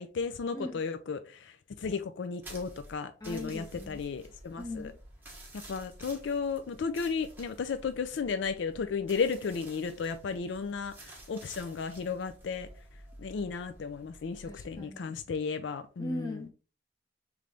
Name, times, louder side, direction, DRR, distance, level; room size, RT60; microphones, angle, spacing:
voice 1, 0.0-4.9 5.7-12.7 13.2-16.4, left 5 dB, 70° left, 0.4 m, -34 dB
sound 1, 2.4-14.8, right 1 dB, 10° right, 1.1 m, -51 dB
voice 2, 3.2-4.0 4.6-5.0 14.4-15.1 16.0-16.5, left 1 dB, 20° left, 0.9 m, -39 dB
3.3 x 3.2 x 3.8 m
head